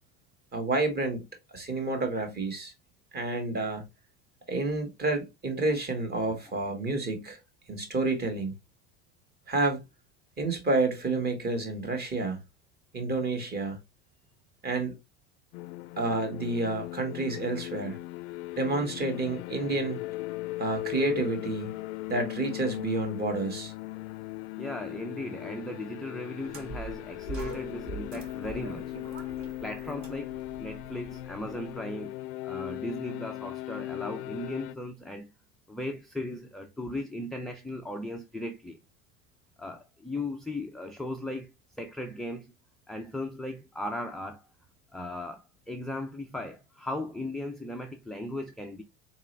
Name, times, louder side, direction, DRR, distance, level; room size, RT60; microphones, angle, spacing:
voice 1, 0.5-1.2 1.5-2.7 3.1-3.8 4.5-7.4 7.7-8.5 9.5-9.8 10.4-12.4 12.9-13.8 14.6-14.9 16.0-18.0 18.6-20.0 20.6-21.8 22.1-23.7, right 3 dB, 25° right, 1.7 m, -29 dB
sound 1, 15.5-34.7, left 18 dB, 65° left, 0.5 m, -38 dB
voice 2, 24.6-29.0 29.6-32.2 32.4-35.3 35.7-38.8 39.6-41.5 41.8-42.5 42.9-44.5 44.9-48.8, left 1 dB, ahead, 0.4 m, -37 dB
sound 2, 26.4-31.7, right 4 dB, 55° right, 2.3 m, -43 dB
4.2 x 3.6 x 3.2 m
supercardioid pair, 120°, 35 cm